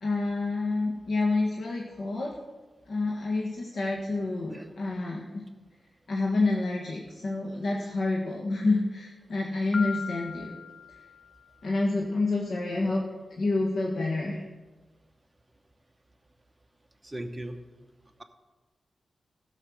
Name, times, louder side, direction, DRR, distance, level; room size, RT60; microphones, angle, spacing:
voice 1, 0.0-2.3 2.9-5.4 6.1-10.6 11.6-13.0 13.4-14.4, left 2 dB, 70° left, -2 dB, 1.5 m, -28 dB
Piano, 9.7-11.6, left 6 dB, 45° left, 0.3 m, -39 dB
voice 2, 17.0-17.6, right 1 dB, 15° right, 5 dB, 1.0 m, -37 dB
15.0 x 6.5 x 6.3 m, 1.3 s
wide cardioid pair, 125°, 0 cm